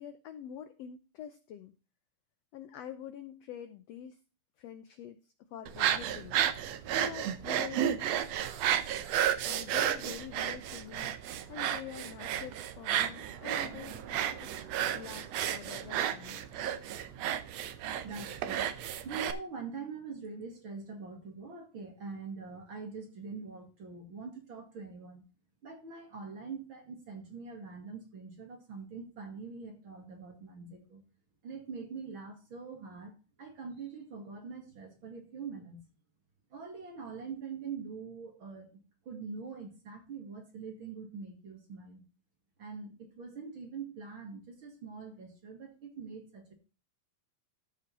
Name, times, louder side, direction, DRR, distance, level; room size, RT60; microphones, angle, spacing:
voice 1, 0.0-1.7 2.5-4.2 4.6-6.4 6.9-8.1 9.4-14.5 14.9-16.5, left 10 dB, 80° left, 10 dB, 1.4 m, -46 dB
sound 1, 5.7-19.3, right 10 dB, 70° right, 1.6 m, -32 dB
voice 2, 18.0-18.7 19.0-25.2 25.6-31.0 31.4-35.8 36.5-38.7 39.1-42.0 42.6-46.5, right 5 dB, 40° right, 4 dB, 2.5 m, -44 dB
14.0 x 5.4 x 4.0 m, 0.33 s
omnidirectional pair, 3.8 m